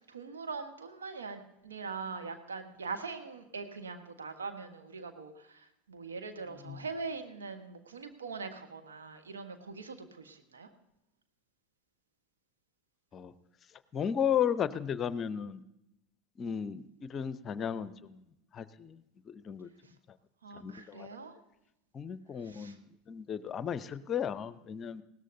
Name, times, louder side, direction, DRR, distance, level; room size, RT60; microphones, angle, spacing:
voice 1, 0.1-10.7 20.4-21.3 22.4-22.7, right 4 dB, 80° right, 6 dB, 1.2 m, -42 dB
voice 2, 13.9-15.6 16.4-18.2 18.5-19.0 19.3-19.7 20.6-21.1 21.9-25.0, left 8 dB, 35° left, 15 dB, 0.6 m, -34 dB
20.0 x 17.0 x 2.7 m, 0.89 s
figure-of-eight pair, 80°, 0 cm